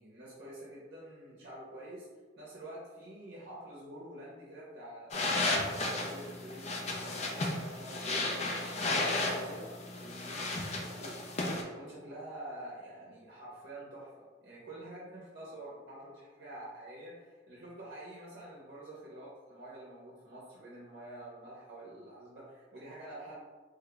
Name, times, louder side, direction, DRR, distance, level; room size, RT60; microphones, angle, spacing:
voice 1, 0.0-2.1 2.4-11.2 11.6-23.4, right 1 dB, 55° right, -6 dB, 0.7 m, -48 dB
sound 1, 5.1-11.6, left 2 dB, 35° left, 0.4 m, -34 dB
3.2 x 2.3 x 3.8 m, 1.4 s
head